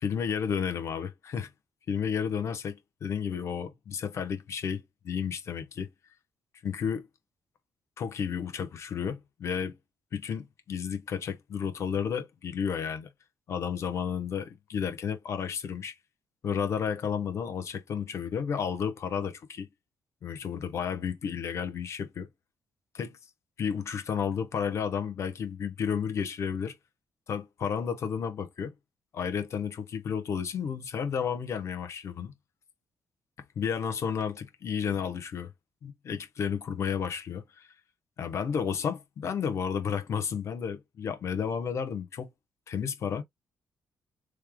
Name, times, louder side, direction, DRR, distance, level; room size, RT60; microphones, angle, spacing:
voice 1, 0.0-1.5 1.9-5.9 6.6-7.1 8.0-9.8 10.1-13.1 13.5-16.0 16.4-19.7 20.2-22.3 22.9-23.2 23.6-26.7 27.3-28.7 29.1-32.3 33.6-35.5 35.8-37.7 38.2-42.3 42.7-43.2, left 7 dB, 50° left, 0.9 m, -32 dB
3.2 x 2.2 x 3.5 m
cardioid pair, 130°, 6 cm